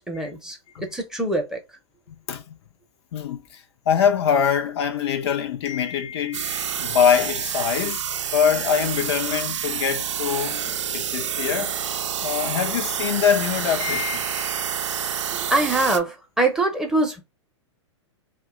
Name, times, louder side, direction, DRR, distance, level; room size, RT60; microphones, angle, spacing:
voice 1, 0.0-0.6 0.9-1.6 15.5-17.2, right 2 dB, 5° right, 0.7 m, -23 dB
voice 2, 3.1-8.0 8.3-11.8 12.2-15.2, left 8 dB, 60° left, 0.6 m, -24 dB
sound 1, 6.3-16.0, right 8 dB, 75° right, 0.5 m, -28 dB
2.6 x 2.2 x 3.6 m
hypercardioid pair, 115°, 15 cm